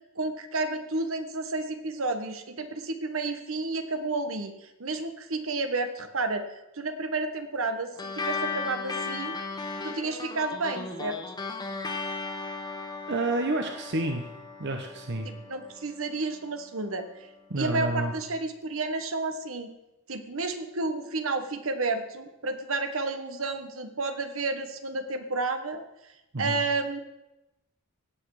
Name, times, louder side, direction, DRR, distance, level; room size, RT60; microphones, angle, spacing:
voice 1, 0.2-9.4 9.8-11.2 15.2-17.1 17.6-19.7 20.1-25.8 26.4-27.0, right 3 dB, 70° right, 8 dB, 1.3 m, -31 dB
sound 1, 8.0-16.8, left 4 dB, 20° left, 1.3 m, -36 dB
voice 2, 13.1-14.3 14.6-15.3 17.5-18.1 26.3-26.6, right 2 dB, 55° right, 4 dB, 1.0 m, -29 dB
17.5 x 8.4 x 4.9 m, 0.95 s
head